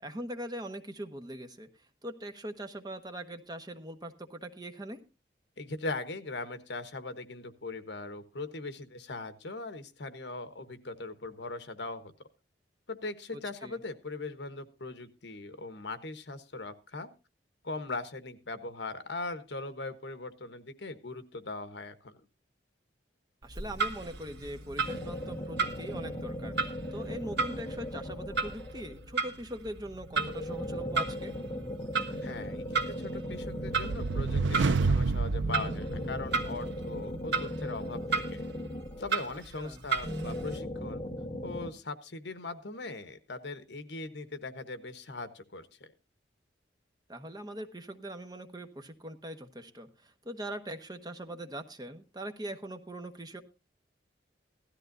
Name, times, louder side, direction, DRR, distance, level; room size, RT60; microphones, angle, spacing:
voice 1, 0.0-1.7 2.0-5.0 13.6-13.8 23.4-31.4 39.6-39.8 47.1-53.4, right 1 dB, 20° right, 7 dB, 1.1 m, -41 dB
voice 2, 5.6-12.1 12.9-17.1 17.6-22.2 32.2-38.4 39.0-41.0 41.4-45.9, left 3 dB, 70° left, 11 dB, 1.2 m, -40 dB
Clock, 23.4-40.6, right 4 dB, 65° right, 1.5 m, -36 dB
sound 1, 24.8-29.0 30.1-34.8 35.4-39.4 40.0-41.7, left 1 dB, 30° left, 1.4 m, -38 dB
sound 2, 32.8-36.7, right 4 dB, 90° right, 0.5 m, -30 dB
16.5 x 13.5 x 2.6 m, 0.28 s
head